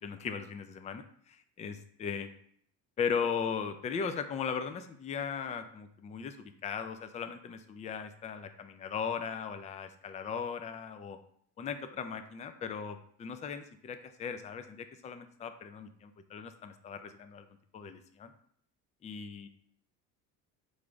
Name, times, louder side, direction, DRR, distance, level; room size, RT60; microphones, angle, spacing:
voice 1, 0.0-2.3 3.0-11.2 11.6-17.5 17.7-18.3 19.0-19.5, left 6 dB, 20° left, 9 dB, 0.3 m, -38 dB
3.9 x 3.2 x 3.5 m, 0.63 s
cardioid pair, 105°, 36 cm